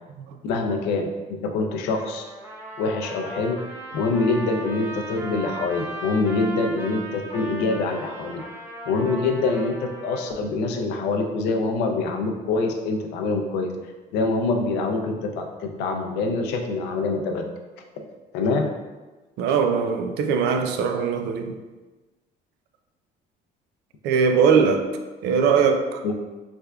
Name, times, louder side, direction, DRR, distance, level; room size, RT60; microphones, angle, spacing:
voice 1, 0.4-2.2 2.8-3.6 3.9-8.4 8.9-17.5 18.3-18.8 26.0-26.1, left 3 dB, 90° left, 3 dB, 0.5 m, -25 dB
Trumpet, 1.9-10.3, right 1 dB, 15° right, 0.6 m, -37 dB
voice 2, 19.4-21.6 24.0-24.8 25.2-26.0, right 6 dB, 80° right, 5 dB, 0.4 m, -21 dB
3.4 x 3.4 x 2.3 m, 1.2 s
cardioid pair, 110°, 17 cm